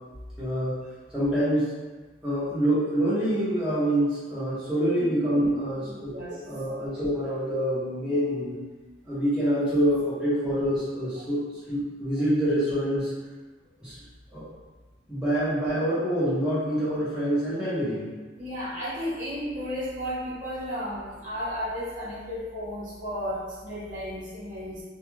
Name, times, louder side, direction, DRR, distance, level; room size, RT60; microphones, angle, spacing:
voice 1, 0.4-0.8 1.1-1.7 2.2-6.1 6.5-8.6 9.0-11.4 11.7-13.1 13.8-14.0 14.3-14.5 15.1-18.1, equal, 5° right, -12 dB, 0.7 m, -26 dB
voice 2, 5.9-6.4 18.4-24.8, equal, 45° right, -9 dB, 0.9 m, -33 dB
2.3 x 2.2 x 3.0 m, 1.3 s
head